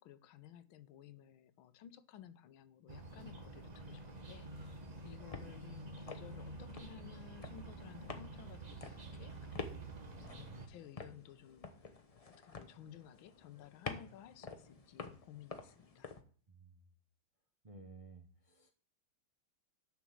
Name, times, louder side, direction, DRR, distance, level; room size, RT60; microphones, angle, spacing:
voice 1, 0.0-10.1 10.3-11.9 12.2-16.2, left 10 dB, 85° left, 14 dB, 1.5 m, -56 dB
sound 1, 2.9-10.7, right 2 dB, 30° right, 0.8 m, -49 dB
sound 2, 4.6-16.2, left 4 dB, 40° left, 0.5 m, -50 dB
voice 2, 16.5-16.8 17.6-18.7, right 3 dB, 45° right, 5 dB, 0.4 m, -55 dB
7.1 x 6.0 x 7.6 m, 0.43 s
omnidirectional pair, 2.2 m